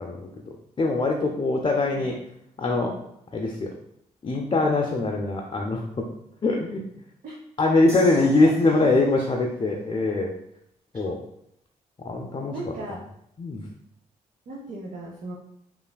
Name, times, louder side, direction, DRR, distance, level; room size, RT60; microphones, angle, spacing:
voice 1, 0.0-2.2 2.6-2.9 3.3-3.7 4.2-6.1 6.4-6.8 7.6-10.3 10.9-11.2 12.0-12.7 13.4-13.7, left 2 dB, 30° left, -1 dB, 0.4 m, -23 dB
sound 1, 7.9-9.4, equal, 40° right, 1.0 m, -44 dB
voice 2, 7.9-8.5 12.5-13.0 14.5-15.3, right 2 dB, 65° right, -2 dB, 0.6 m, -37 dB
3.2 x 2.4 x 2.2 m, 0.75 s
supercardioid pair, 50°, 16 cm